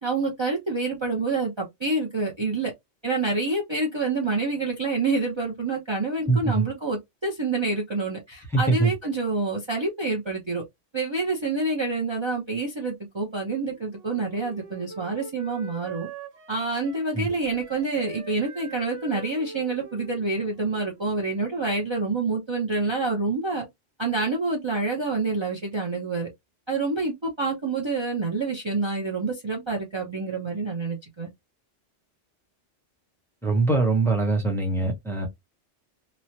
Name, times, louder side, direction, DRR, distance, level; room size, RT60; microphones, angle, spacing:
voice 1, 0.0-2.7 3.0-10.6 10.9-16.1 16.5-23.7 24.0-26.3 26.7-31.3, right 3 dB, 30° right, 0.7 m, -27 dB
voice 2, 6.3-6.7 8.5-8.9 17.1-17.3 33.4-35.3, right 3 dB, 5° left, 0.7 m, -23 dB
Wind instrument woodwind instrument, 13.4-21.4, right 5 dB, 70° right, 1.4 m, -44 dB
3.1 x 2.2 x 2.6 m
omnidirectional pair, 1.2 m